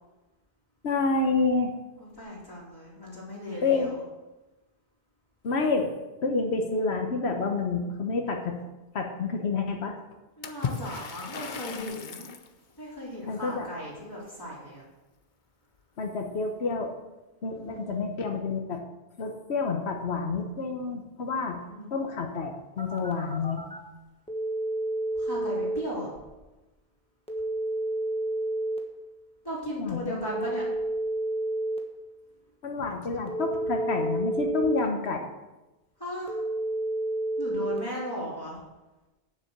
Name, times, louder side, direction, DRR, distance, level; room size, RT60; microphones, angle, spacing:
voice 1, 0.8-1.7 3.6-3.9 5.4-5.9 6.2-8.6 8.9-9.9 13.3-13.7 16.0-16.9 17.4-18.8 19.2-21.6 21.9-23.6 29.8-30.0 32.6-35.3, left 4 dB, 90° left, 3 dB, 1.3 m, -28 dB
voice 2, 2.0-3.9 10.4-12.3 12.8-14.8 17.5-18.0 21.3-21.9 25.1-26.1 29.4-30.7 36.0-36.5 37.4-38.6, equal, 20° left, -7 dB, 4.3 m, -37 dB
Water / Splash splatter, 10.4-12.5, left 6 dB, 50° left, 0.9 m, -36 dB
Telephone, 22.8-23.8 24.3-25.8 27.3-28.8 30.3-31.8 33.3-34.8 36.3-37.8, right 1 dB, 5° left, 1.3 m, -30 dB
9.6 x 7.5 x 6.6 m, 1.1 s
omnidirectional pair, 1.1 m